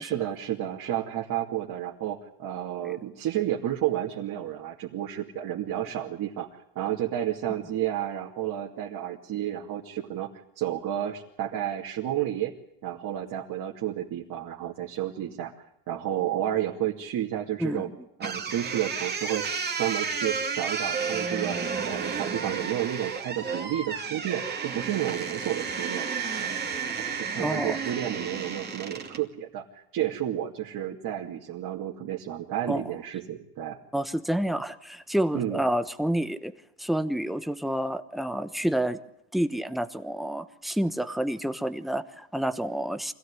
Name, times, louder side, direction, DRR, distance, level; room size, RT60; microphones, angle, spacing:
voice 1, 0.0-6.5 6.7-10.3 10.6-12.5 12.8-15.5 15.9-17.9 18.2-19.4 19.8-21.6 21.8-26.1 26.4-26.5 26.8-33.8 35.3-35.6, right 12 dB, 45° right, -1 dB, 2.6 m, -31 dB
sound 1, 18.2-29.2, right 5 dB, 20° right, 2.6 m, -32 dB
voice 2, 27.4-27.8 32.7-32.9 33.9-36.5 36.8-39.0 39.3-43.1, right 1 dB, ahead, 10 dB, 1.1 m, -29 dB
25.5 x 16.5 x 9.8 m, 0.79 s
supercardioid pair, 130°, 47 cm